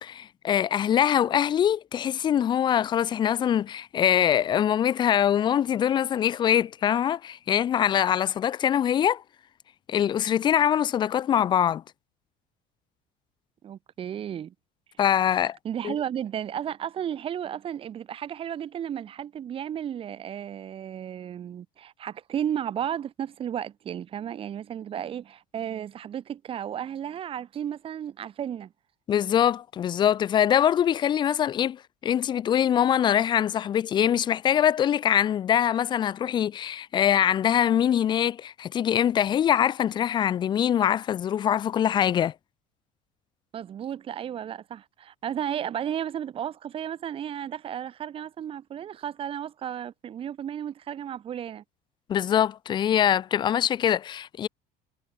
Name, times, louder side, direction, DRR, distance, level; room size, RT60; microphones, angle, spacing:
voice 1, 0.0-9.2 9.9-11.8 15.0-15.6 15.8-15.9 29.1-42.3 52.1-54.5, left 9 dB, 25° left, 0.4 m, -23 dB
voice 2, 13.6-14.5 15.6-28.7 43.5-51.6, right 9 dB, 30° right, 1.2 m, -33 dB
cardioid pair, 165°, 20 cm